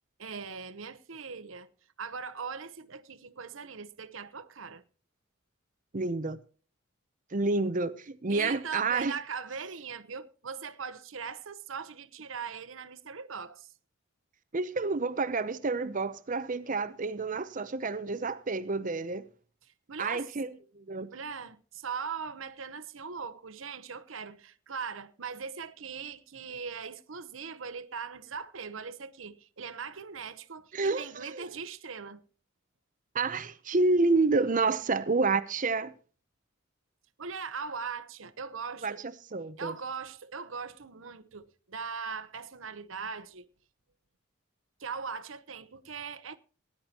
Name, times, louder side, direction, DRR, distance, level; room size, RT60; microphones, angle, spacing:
voice 1, 0.2-1.7 2.0-4.8 8.3-13.7 19.7-20.3 21.1-32.2 37.2-39.0 39.6-43.5 44.8-46.4, right 6 dB, 75° right, 0.9 m, -40 dB
voice 2, 5.9-6.4 7.3-9.1 14.5-19.2 20.0-20.5 20.7-21.1 30.7-31.5 33.1-35.9 38.8-38.9 39.3-39.7, right 3 dB, 40° right, 0.7 m, -29 dB
18.5 x 10.5 x 2.9 m
head